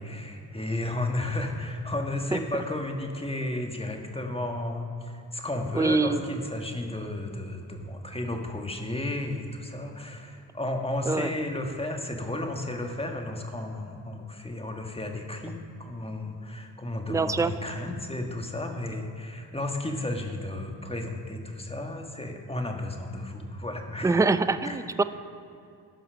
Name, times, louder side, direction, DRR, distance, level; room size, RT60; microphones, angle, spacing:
voice 1, 0.0-24.2 24.6-24.8, left 1 dB, 15° left, 3 dB, 1.5 m, -33 dB
voice 2, 5.7-6.2 11.1-11.3 17.1-17.5 24.0-25.0, right 3 dB, 10° right, 12 dB, 0.4 m, -24 dB
14.5 x 5.6 x 5.7 m, 2.5 s
supercardioid pair, 60°, 43 cm